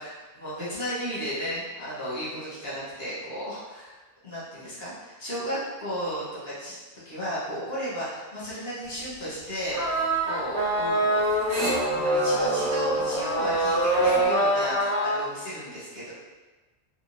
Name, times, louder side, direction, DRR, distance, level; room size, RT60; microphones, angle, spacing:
voice 1, 0.0-3.9 4.2-6.8 7.0-11.2 11.6-16.1, equal, 60° left, -9 dB, 1.4 m, -34 dB
sound 1, 8.8-14.3, right 1 dB, 90° right, 1.2 m, -37 dB
sound 2, 9.7-15.2, right 1 dB, 70° right, 1.0 m, -24 dB
3.6 x 2.8 x 2.6 m, 1.2 s
omnidirectional pair, 1.2 m